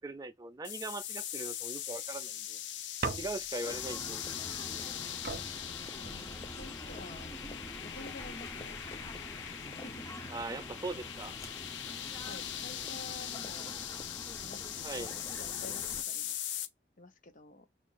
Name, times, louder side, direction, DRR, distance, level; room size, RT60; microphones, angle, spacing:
voice 1, 0.0-2.6 3.2-4.2 10.3-11.4 14.8-15.1, right 2 dB, 20° right, 0.4 m, -40 dB
sound 1, 0.6-16.7, left 10 dB, 85° left, 0.5 m, -41 dB
sound 2, 3.0-3.7 4.9-5.0 5.2-6.7 7.5-7.9, right 4 dB, 55° right, 0.7 m, -40 dB
sound 3, 3.6-16.0, left 1 dB, 15° left, 0.8 m, -46 dB
voice 2, 6.0-7.3 7.8-8.8 9.4-9.6 9.8-10.2 12.3-13.8 14.4-16.4 17.0-17.7, left 2 dB, 45° left, 0.8 m, -50 dB
5.8 x 2.5 x 2.4 m
head